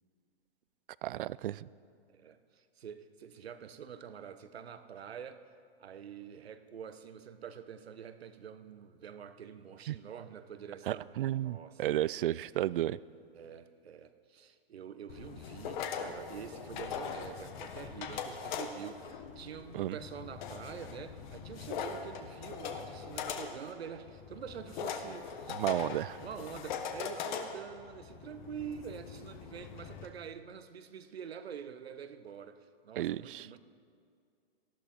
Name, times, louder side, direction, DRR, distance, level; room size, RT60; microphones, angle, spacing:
voice 1, 1.0-1.7 9.9-10.0 10.9-13.0 19.7-20.0 25.5-26.2 33.0-33.5, right 14 dB, 60° right, 20 dB, 0.4 m, -33 dB
voice 2, 2.1-5.5 5.8-12.0 13.3-33.6, right 8 dB, 80° right, 11 dB, 1.1 m, -46 dB
sound 1, 15.1-30.1, left 7 dB, 50° left, 1.4 m, -41 dB
18.5 x 14.0 x 4.4 m, 2.3 s
hypercardioid pair, 135°, 31 cm